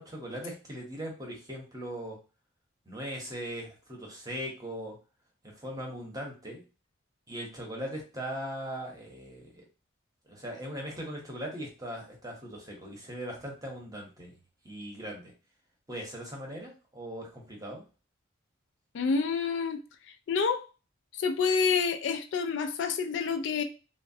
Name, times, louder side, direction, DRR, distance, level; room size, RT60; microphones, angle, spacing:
voice 1, 0.0-2.2 2.9-5.0 5.4-6.6 7.3-9.6 10.3-14.3 14.6-15.3 15.9-17.8, equal, 20° right, 0.8 m, -39 dB
voice 2, 18.9-19.8 20.3-20.7 21.2-23.6, left 5 dB, 60° left, 0.3 m, -28 dB
3.1 x 2.1 x 2.6 m
head